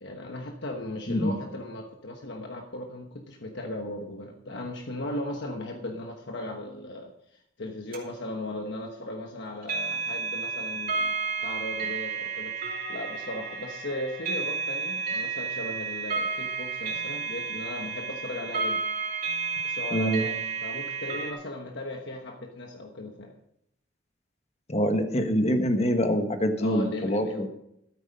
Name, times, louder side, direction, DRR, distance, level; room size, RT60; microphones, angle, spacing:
voice 1, 0.0-11.1 11.4-12.5 12.9-18.8 19.6-23.4 26.6-27.5, left 1 dB, 65° left, 2 dB, 1.2 m, -37 dB
voice 2, 1.1-1.4 19.9-20.3 24.7-27.5, equal, 35° left, 7 dB, 1.4 m, -25 dB
sound 1, 7.9-8.0 9.6-21.3, right 5 dB, 50° right, 2.8 m, -31 dB
13.0 x 9.4 x 5.3 m, 0.77 s
head